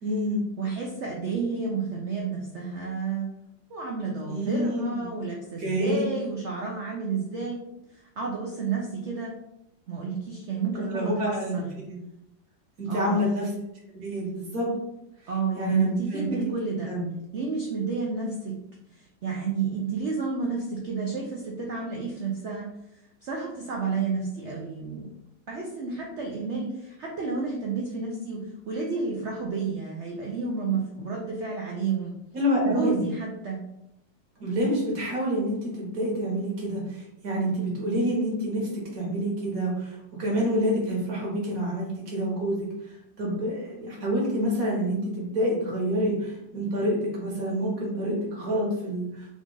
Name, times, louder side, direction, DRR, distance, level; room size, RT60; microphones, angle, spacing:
voice 1, 0.0-0.4 4.3-4.9 5.6-6.1 10.8-12.0 12.8-13.5 13.9-14.7 15.6-16.2 16.9-17.1 32.3-33.1 34.4-49.3, equal, 55° right, -3 dB, 1.6 m, -27 dB
voice 2, 0.6-3.3 3.7-7.6 7.9-9.4 9.9-11.7 12.9-13.3 15.3-16.9 17.3-18.6 18.9-22.7 23.2-25.1 25.5-32.1 32.6-33.6, right 4 dB, 80° right, -1 dB, 0.6 m, -31 dB
3.8 x 2.4 x 3.8 m, 0.83 s
omnidirectional pair, 2.0 m